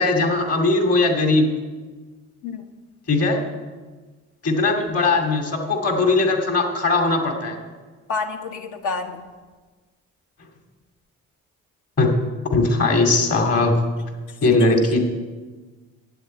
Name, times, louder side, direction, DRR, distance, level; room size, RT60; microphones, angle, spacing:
voice 1, 0.0-1.5 3.1-3.4 4.4-7.6 12.0-12.1 12.5-13.7 14.4-15.0, left 3 dB, 55° left, 3 dB, 2.5 m, -19 dB
voice 2, 8.1-9.2 14.4-14.8, left 4 dB, 85° left, 5 dB, 1.3 m, -29 dB
8.4 x 7.9 x 8.9 m, 1.3 s
cardioid pair, 90°, 30 cm